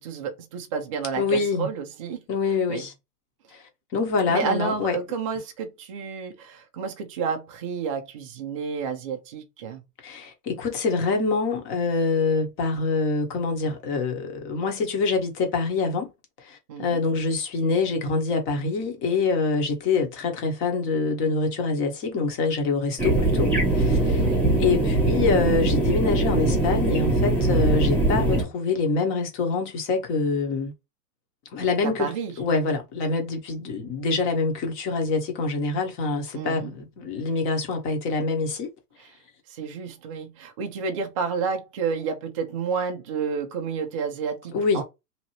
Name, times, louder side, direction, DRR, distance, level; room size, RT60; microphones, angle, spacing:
voice 1, 0.0-2.2 2.7-2.8 4.3-9.8 16.7-17.0 23.8-24.4 31.8-32.3 36.3-36.7 39.0-39.1 39.5-44.8, right 6 dB, 25° right, 0.4 m, -30 dB
voice 2, 1.2-1.7 2.3-2.9 3.5-3.6 3.9-5.0 10.0-16.1 16.4-24.3 24.6-30.7 31.5-38.7 44.5-44.8, left 4 dB, 25° left, 1.0 m, -25 dB
sound 1, 23.0-28.4, right 2 dB, 5° left, 0.8 m, -22 dB
2.9 x 2.5 x 2.9 m
hypercardioid pair, 130°, 47 cm